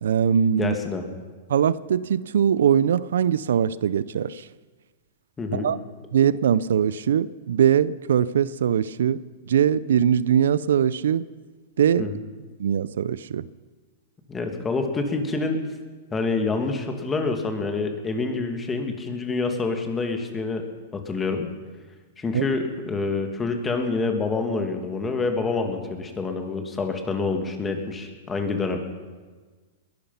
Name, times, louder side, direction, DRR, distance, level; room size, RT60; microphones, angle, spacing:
voice 1, 0.0-0.8 1.5-4.5 5.5-5.8 6.1-11.3 11.8-12.1 12.6-13.5 22.3-22.5, right 8 dB, 80° right, 19 dB, 0.5 m, -21 dB
voice 2, 0.6-1.1 5.4-5.7 12.0-12.2 14.3-15.6 16.1-20.7 20.9-21.5 22.2-28.8, left 3 dB, 15° left, 5 dB, 2.1 m, -27 dB
21.0 x 11.5 x 5.7 m, 1.4 s
hypercardioid pair, 130°, 0 cm